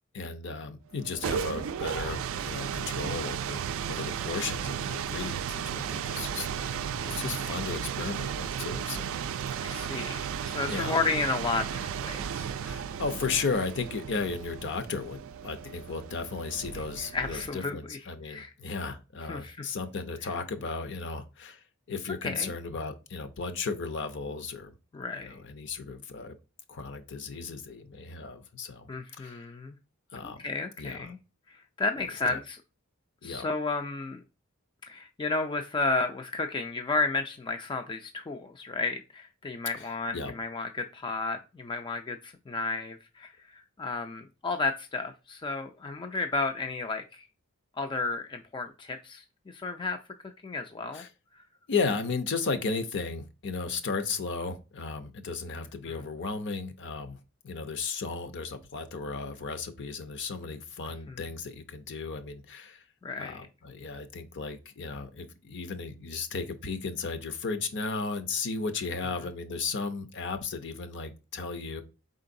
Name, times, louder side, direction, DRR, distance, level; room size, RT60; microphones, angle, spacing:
voice 1, 0.1-9.2 9.5-9.7 10.7-11.0 12.6-24.7 25.2-26.3 26.7-28.9 29.2-29.4 30.1-30.4 30.8-31.1 32.0-32.4 33.2-33.5 39.7-40.3 50.9-51.1 51.7-57.2 57.4-62.8 63.2-71.8, left 4 dB, 60° left, 0.6 m, -35 dB
sound 1, 0.9-17.7, right 8 dB, 65° right, 0.3 m, -34 dB
voice 2, 6.9-7.3 9.6-12.5 16.7-16.8 17.1-18.0 18.3-18.5 19.3-19.7 22.2-22.5 24.9-25.4 28.9-29.8 30.4-31.2 31.5-32.6 33.2-34.2 34.9-47.2 47.8-50.0 50.4-51.0 55.9-56.0 61.1-61.2 63.0-63.4, left 3 dB, 20° left, 0.3 m, -32 dB
4.4 x 3.8 x 2.6 m
head